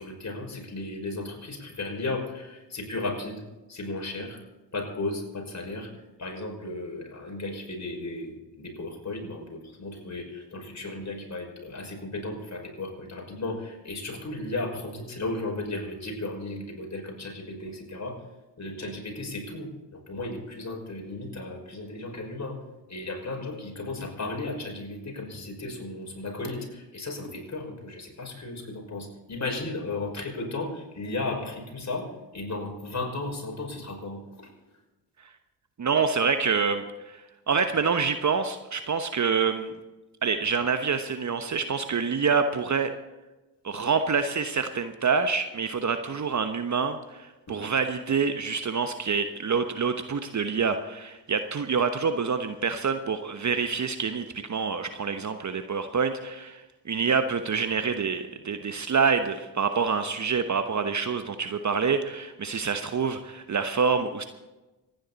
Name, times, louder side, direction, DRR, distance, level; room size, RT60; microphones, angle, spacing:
voice 1, 0.0-3.4 3.7-4.4 4.7-5.9 6.2-18.2 18.6-22.6 22.9-34.5 47.5-47.6, left 2 dB, 35° left, 1 dB, 5.7 m, -35 dB
voice 2, 35.8-39.7 40.2-42.9 43.6-64.2, right 5 dB, 35° right, 8 dB, 1.1 m, -27 dB
25.5 x 10.5 x 4.1 m, 1.1 s
hypercardioid pair, 45°, 50 cm